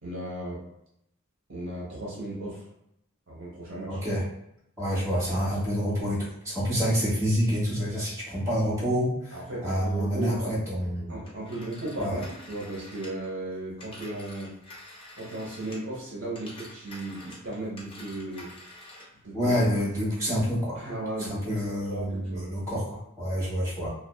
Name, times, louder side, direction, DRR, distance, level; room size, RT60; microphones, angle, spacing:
voice 1, 0.0-0.6 1.5-2.7 3.3-4.0 9.3-10.5 11.1-14.5 15.1-18.5 19.2-19.5 20.7-22.4, right 1 dB, 60° right, -6 dB, 0.9 m, -36 dB
voice 2, 3.9-4.2 4.8-11.2 12.0-12.2 19.3-20.8 21.2-23.9, equal, 15° right, -9 dB, 1.1 m, -28 dB
Telephone, 11.3-16.0 16.3-19.2, left 1 dB, 25° left, 0.6 m, -47 dB
2.6 x 2.1 x 2.3 m, 0.80 s
head